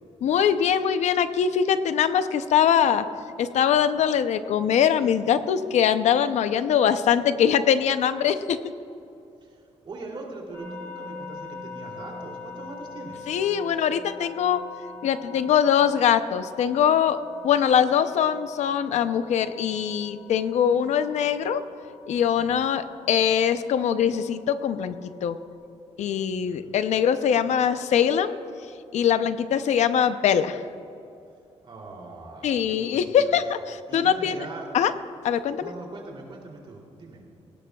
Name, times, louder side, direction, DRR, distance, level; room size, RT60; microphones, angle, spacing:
voice 1, 0.2-3.0 3.4-8.6 13.3-14.6 15.0-21.6 22.1-25.0 25.2-25.4 26.0-28.3 28.9-30.6 32.4-34.4 34.7-34.9 35.2-35.7, left 8 dB, 80° left, 11 dB, 0.6 m, -22 dB
voice 2, 9.8-13.3 22.4-22.5 26.5-26.7 31.6-33.4 33.9-34.7 35.6-37.2, right 3 dB, 45° right, 0 dB, 2.9 m, -41 dB
sound 1, 10.5-25.5, left 4 dB, 20° left, 2.3 m, -43 dB
19.0 x 17.0 x 2.3 m, 2.6 s
cardioid pair, 135°, 12 cm